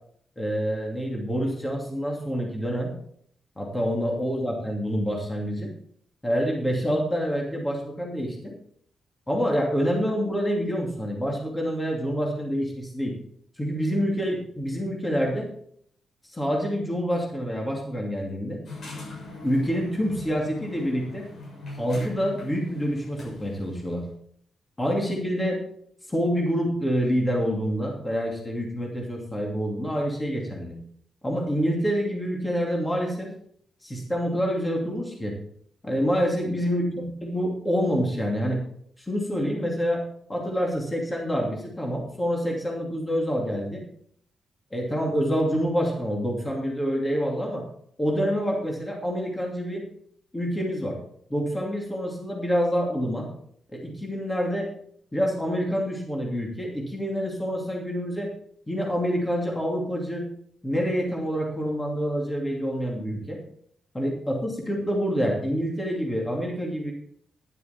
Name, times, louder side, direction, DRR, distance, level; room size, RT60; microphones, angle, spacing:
voice 1, 0.4-2.9 3.6-5.7 6.2-8.5 9.3-13.1 13.6-15.5 16.3-18.6 19.4-21.3 21.8-24.0 24.8-25.6 26.1-30.7 31.2-33.3 33.8-35.3 35.8-38.6 39.1-40.0 40.3-43.8 44.7-47.7 48.0-49.8 50.3-51.0 51.3-53.3 53.7-54.7 55.1-58.3 58.7-60.3 60.6-63.4 63.9-66.9, equal, 10° left, -1 dB, 2.7 m, -27 dB
sound 1, 18.7-23.9, left 2 dB, 55° left, 6.7 m, -40 dB
12.0 x 11.0 x 4.5 m, 0.64 s
wide cardioid pair, 155°, 0 cm